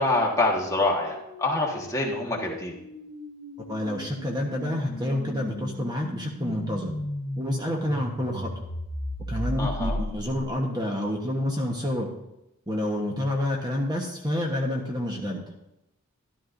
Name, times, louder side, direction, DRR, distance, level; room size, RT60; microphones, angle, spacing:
voice 1, 0.0-2.7 9.6-10.0, left 2 dB, 15° left, -2 dB, 1.4 m, -26 dB
sound 1, 0.5-10.6, left 1 dB, 55° left, 2.3 m, -36 dB
voice 2, 3.7-7.0 7.4-8.5 9.3-12.1 12.7-15.4, left 1 dB, 20° right, 0 dB, 1.1 m, -28 dB
12.5 x 12.0 x 2.6 m, 0.88 s
head